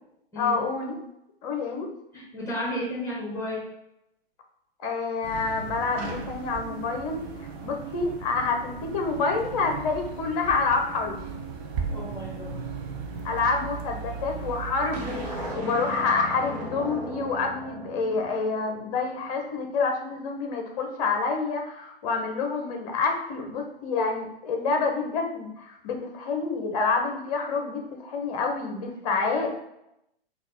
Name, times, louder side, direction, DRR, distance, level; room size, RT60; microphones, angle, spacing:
voice 1, 0.4-0.9 1.4-1.9 4.8-7.2 7.6-11.3 13.2-29.5, left 4 dB, 40° left, 3 dB, 0.8 m, -28 dB
voice 2, 2.1-3.6 11.9-12.6 29.0-29.5, left 1 dB, 10° left, -3 dB, 1.5 m, -33 dB
sound 1, 5.2-15.5, right 5 dB, 25° right, 0.5 m, -37 dB
sound 2, 14.9-19.3, right 2 dB, 45° right, 1.0 m, -37 dB
3.9 x 2.5 x 4.4 m, 0.84 s
figure-of-eight pair, 110°, 30 cm